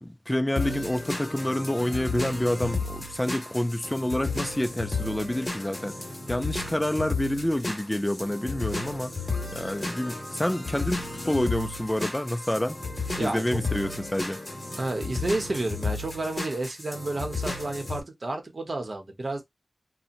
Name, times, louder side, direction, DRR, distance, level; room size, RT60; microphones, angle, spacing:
voice 1, 0.0-6.0 6.3-9.1 9.5-12.8 13.2-14.4, left 1 dB, 10° left, 0.3 m, -28 dB
sound 1, 0.6-18.0, left 3 dB, 35° left, 1.0 m, -33 dB
voice 2, 13.2-13.6 14.8-19.4, right 2 dB, 50° right, 0.8 m, -31 dB
2.8 x 2.1 x 2.5 m
wide cardioid pair, 90°, 0 cm